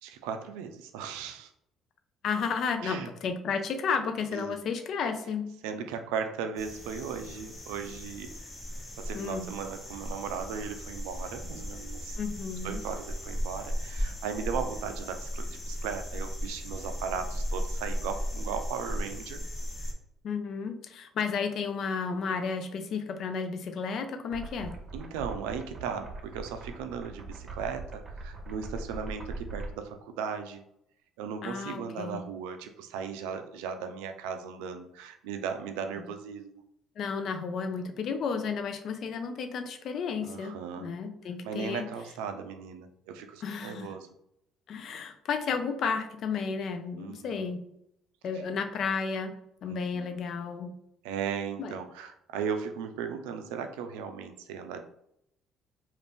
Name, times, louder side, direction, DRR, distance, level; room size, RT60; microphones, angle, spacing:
voice 1, 0.0-1.5 2.8-3.1 4.3-4.6 5.6-8.3 9.0-12.2 12.6-19.4 24.9-30.6 31.2-36.6 40.2-40.9 41.4-44.1 47.0-47.5 48.3-48.4 49.7-50.2 51.0-54.8, right 6 dB, 85° right, 7 dB, 0.4 m, -37 dB
voice 2, 2.2-5.5 9.1-9.5 12.2-12.8 20.2-24.7 31.4-32.2 36.0-36.1 37.0-41.9 43.4-43.9 44.7-47.6 48.2-49.3 49.6-50.7 51.6-51.8, left 5 dB, 60° left, 7 dB, 0.5 m, -32 dB
sound 1, 6.6-19.9, equal, 30° left, 1.0 m, -36 dB
sound 2, 24.3-29.7, right 3 dB, 40° right, 0.7 m, -41 dB
2.5 x 2.5 x 3.4 m, 0.75 s
supercardioid pair, 65°, 0 cm